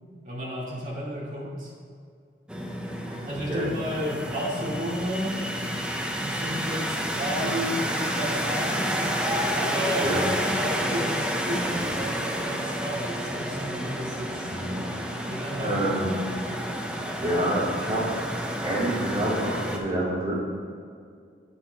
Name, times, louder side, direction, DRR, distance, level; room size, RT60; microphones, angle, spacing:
voice 1, 0.2-1.7 3.2-5.3 6.2-9.1 9.5-10.1 10.5-14.6 15.3-15.9 16.2-16.4, equal, 45° right, -5 dB, 2.4 m, -33 dB
sound 1, 2.5-19.8, equal, 5° right, 0.7 m, -30 dB
voice 2, 14.5-14.8 15.6-16.1 17.2-18.1 18.6-20.4, right 1 dB, 25° right, -7 dB, 2.6 m, -27 dB
8.9 x 7.9 x 4.6 m, 2.2 s
head